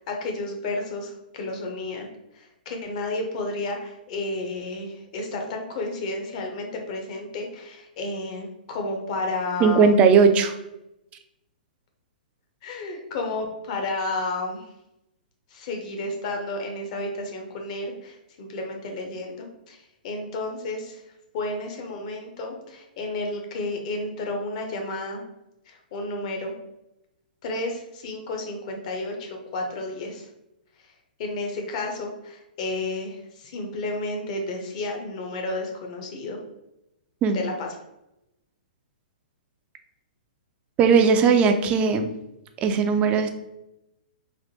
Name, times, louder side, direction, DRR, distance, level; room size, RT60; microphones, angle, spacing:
voice 1, 0.1-2.1 2.3-10.0 12.6-14.6 15.5-19.8 20.0-21.0 21.3-25.2 25.7-26.6 27.4-30.3 31.2-36.4 37.3-37.7, left 2 dB, 45° left, 3 dB, 0.7 m, -31 dB
voice 2, 9.6-10.5 37.2-37.4 40.8-42.1 42.6-43.3, right 5 dB, 25° right, 7 dB, 0.3 m, -18 dB
3.3 x 2.1 x 2.8 m, 0.88 s
hypercardioid pair, 125°, 5 cm